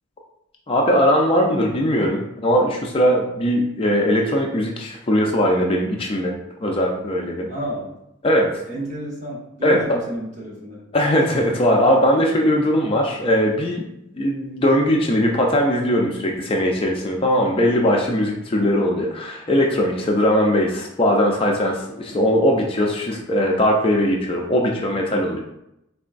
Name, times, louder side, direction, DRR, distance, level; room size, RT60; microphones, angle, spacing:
voice 1, 0.7-6.3 6.6-7.5 8.2-8.5 9.6-10.0 10.9-13.8 14.2-25.4, equal, 25° left, 0 dB, 0.4 m, -20 dB
voice 2, 7.5-8.0 8.7-10.9 18.6-18.8 22.1-22.3, equal, 35° right, -5 dB, 1.1 m, -32 dB
3.8 x 3.3 x 2.5 m, 0.83 s
head